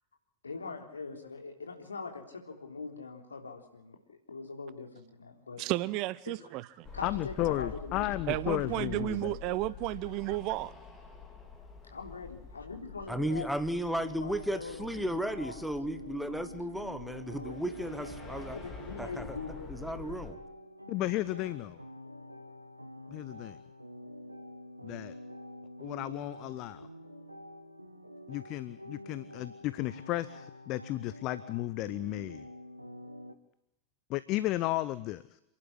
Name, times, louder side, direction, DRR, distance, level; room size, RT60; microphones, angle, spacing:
voice 1, 0.4-5.6 6.3-6.4 6.9-9.3 11.8-13.8 14.2-15.6 15.9-16.0 17.3-17.8 18.5-20.1, left 4 dB, 75° left, 3.7 m, -43 dB
voice 2, 5.6-6.9 8.3-10.7, right 18 dB, 40° right, 0.8 m, -33 dB
sound 1, 6.8-20.3, left 5 dB, 20° left, 3.9 m, -47 dB
voice 3, 7.0-9.3 20.9-21.8 23.1-23.6 24.8-25.2 25.8-26.8 28.3-32.4 34.1-35.4, left 16 dB, 40° left, 0.8 m, -34 dB
voice 4, 13.1-18.6 19.0-19.4 19.7-20.4, equal, ahead, 1.4 m, -34 dB
sound 2, 13.8-33.3, left 1 dB, 90° right, 1.5 m, -47 dB
28.0 x 11.5 x 9.8 m
figure-of-eight pair, 90°, 0 cm